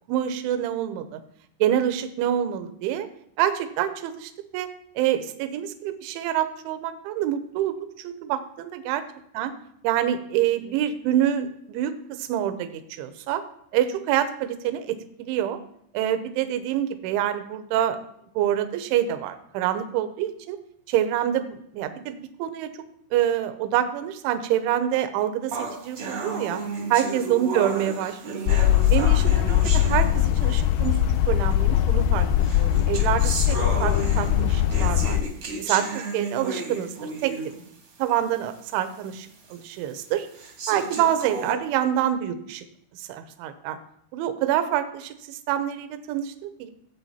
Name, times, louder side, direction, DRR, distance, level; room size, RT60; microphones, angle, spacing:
voice 1, 0.1-1.2 1.6-3.1 3.4-4.7 5.0-9.0 9.3-9.5 9.8-13.4 13.7-15.6 15.9-18.0 18.4-20.6 20.9-22.7 23.1-26.6 26.9-28.6 28.9-31.0 31.3-32.3 32.5-35.2 35.6-37.3 38.0-40.3 40.7-42.7 42.9-43.8 44.1-46.7, right 11 dB, 80° right, 9 dB, 3.0 m, -26 dB
sound 1, 25.5-30.6 31.5-31.6 32.4-37.7 38.1-38.2 38.7-38.8 39.5-39.6 40.3-41.5, right 3 dB, 55° right, 1.5 m, -33 dB
sound 2, 28.5-35.2, left 12 dB, 85° left, 2.7 m, -21 dB
17.0 x 8.0 x 4.3 m, 0.72 s
omnidirectional pair, 5.9 m